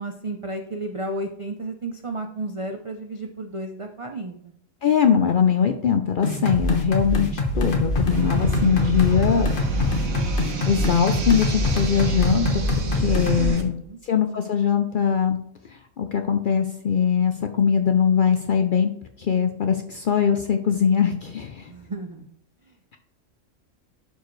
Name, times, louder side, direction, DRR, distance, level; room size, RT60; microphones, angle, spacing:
voice 1, 0.0-4.5 13.3-14.0 21.7-22.4 22.7-22.8, right 2 dB, 60° right, 4 dB, 0.3 m, -33 dB
voice 2, 4.8-9.5 10.7-12.6 12.9-13.8 14.0-15.4 16.0-18.9 19.2-21.7, left 7 dB, 60° left, 6 dB, 0.5 m, -21 dB
sound 1, 6.2-13.5, left 2 dB, 40° left, 1.2 m, -24 dB
sound 2, 8.1-13.6, right 5 dB, 90° right, 1.4 m, -30 dB
11.0 x 4.6 x 3.1 m, 0.70 s
omnidirectional pair, 1.4 m